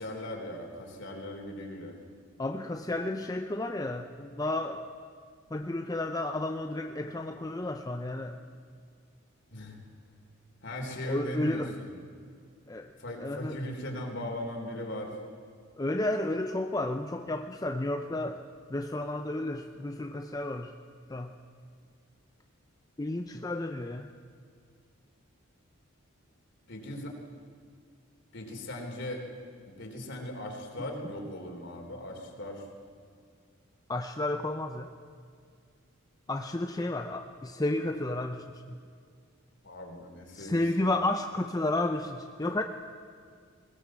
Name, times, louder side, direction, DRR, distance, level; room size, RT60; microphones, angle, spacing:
voice 1, 0.0-1.9 9.5-9.8 10.6-11.9 13.0-15.2 26.7-27.2 28.3-29.2 29.8-32.6 39.6-41.0, left 1 dB, 55° left, 2 dB, 3.6 m, -38 dB
voice 2, 2.4-4.8 5.5-8.4 11.0-11.7 12.7-12.9 13.2-13.6 15.8-18.4 18.7-20.7 21.1-21.3 23.0-24.1 33.9-34.9 36.3-38.8 40.3-42.6, left 2 dB, 15° left, 5 dB, 0.6 m, -32 dB
20.5 x 18.5 x 7.5 m, 2.1 s
head